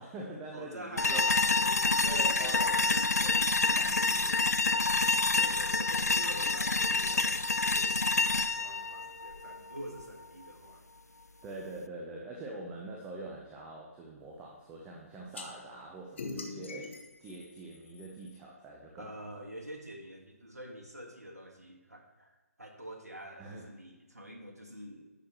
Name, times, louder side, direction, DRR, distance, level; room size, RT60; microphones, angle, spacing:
voice 1, 0.0-1.3 2.0-4.8 11.4-19.3 23.4-23.6, right 2 dB, 10° right, -1 dB, 0.6 m, -44 dB
voice 2, 0.5-2.6 5.3-10.8 19.0-25.1, equal, 80° right, 1 dB, 1.5 m, -46 dB
sound 1, 1.0-10.0, left 3 dB, 85° left, 0.3 m, -28 dB
sound 2, 15.3-15.5 16.2-18.4, left 3 dB, 50° left, 1.0 m, -42 dB
10.0 x 6.4 x 2.9 m, 1.2 s
figure-of-eight pair, 140°, 8 cm